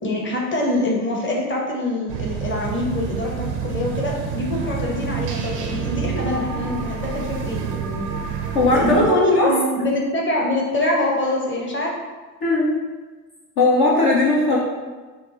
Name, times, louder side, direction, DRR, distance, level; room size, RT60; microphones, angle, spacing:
voice 1, 0.0-8.1 8.7-11.9, left 2 dB, 25° left, -2 dB, 1.3 m, -24 dB
sound 1, 2.1-9.1, right 7 dB, 90° right, 0.6 m, -28 dB
voice 2, 8.5-9.5 12.4-12.7 13.6-14.6, left 2 dB, 50° left, -4 dB, 1.0 m, -18 dB
5.2 x 2.3 x 4.1 m, 1.3 s
hypercardioid pair, 50°, 48 cm